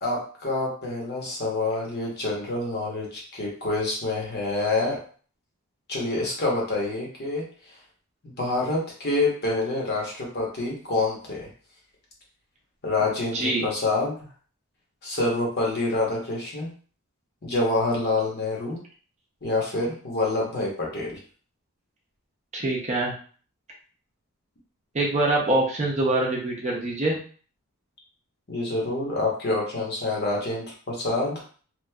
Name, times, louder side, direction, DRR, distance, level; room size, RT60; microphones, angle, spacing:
voice 1, 0.0-5.0 5.9-7.4 8.2-11.5 12.8-14.2 15.0-16.7 17.4-18.8 19.4-21.2 28.5-31.4, left 2 dB, 45° left, -3 dB, 0.9 m, -27 dB
voice 2, 13.3-13.6 22.5-23.1 24.9-27.2, right 2 dB, 30° right, -2 dB, 0.6 m, -24 dB
2.9 x 2.6 x 2.2 m, 0.42 s
head